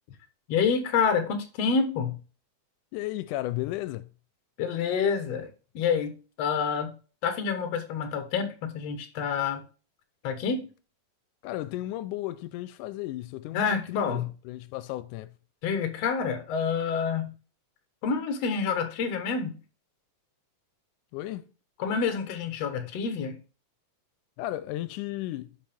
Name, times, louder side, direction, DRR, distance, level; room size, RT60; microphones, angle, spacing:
voice 1, 0.5-2.2 4.6-6.9 7.2-9.6 10.2-10.7 13.5-14.3 15.6-17.3 18.0-19.6 21.8-23.4, left 6 dB, 60° left, 2.2 m, -28 dB
voice 2, 2.9-4.1 11.4-15.3 21.1-21.4 24.4-25.5, left 15 dB, 90° left, 2.1 m, -34 dB
11.5 x 4.7 x 3.4 m
omnidirectional pair, 3.5 m